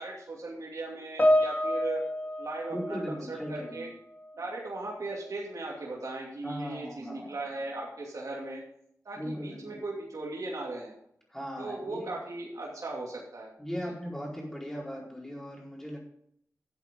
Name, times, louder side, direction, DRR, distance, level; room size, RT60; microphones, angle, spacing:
voice 1, 0.0-2.0 2.4-3.9 4.4-8.6 9.0-10.9 11.6-13.5 13.8-13.9, right 2 dB, 70° right, -4 dB, 2.7 m, -38 dB
Piano, 1.2-4.4 5.2-5.3, left 1 dB, 30° left, 2.4 m, -28 dB
voice 2, 2.7-3.8 6.4-7.3 9.2-9.8 11.3-12.2 13.6-16.1, equal, 5° left, -3 dB, 4.5 m, -38 dB
12.5 x 8.3 x 3.7 m, 0.71 s
wide cardioid pair, 85°, 6 cm